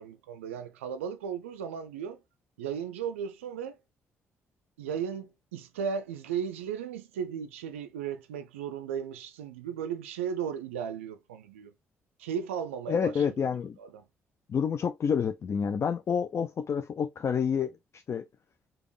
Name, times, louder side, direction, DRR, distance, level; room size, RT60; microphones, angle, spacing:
voice 1, 0.0-2.2 2.6-3.8 4.8-11.7 12.2-13.2 13.8-14.0, right 7 dB, 80° right, 0.4 m, -35 dB
voice 2, 12.9-13.8 14.5-18.3, left 7 dB, 40° left, 0.4 m, -29 dB
4.9 x 2.3 x 3.2 m
figure-of-eight pair, 45°, 7 cm